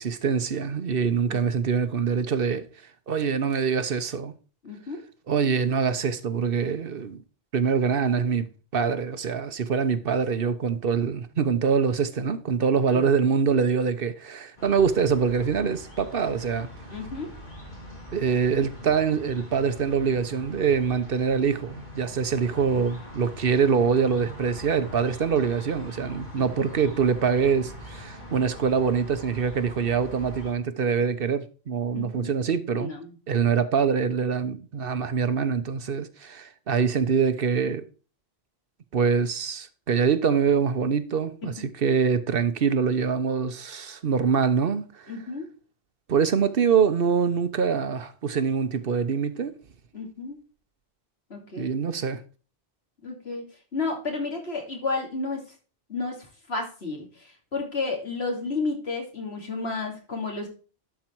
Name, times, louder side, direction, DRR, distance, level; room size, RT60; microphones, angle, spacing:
voice 1, 0.0-2.7 3.1-4.3 5.3-7.2 7.5-16.7 18.1-32.9 33.3-37.8 38.9-45.1 46.1-49.5 51.6-52.2, right 6 dB, 65° right, 1.0 m, -24 dB
voice 2, 4.6-5.0 12.9-13.1 16.9-17.3 26.4-26.5 31.9-32.3 32.8-33.1 41.4-41.5 45.1-45.5 49.9-50.4 51.3-51.7 53.0-53.4 53.7-55.4 55.9-60.5, left 3 dB, 75° left, 3.0 m, -32 dB
sound 1, 14.6-30.5, equal, 45° left, 3.3 m, -42 dB
11.5 x 4.6 x 4.5 m
omnidirectional pair, 1.1 m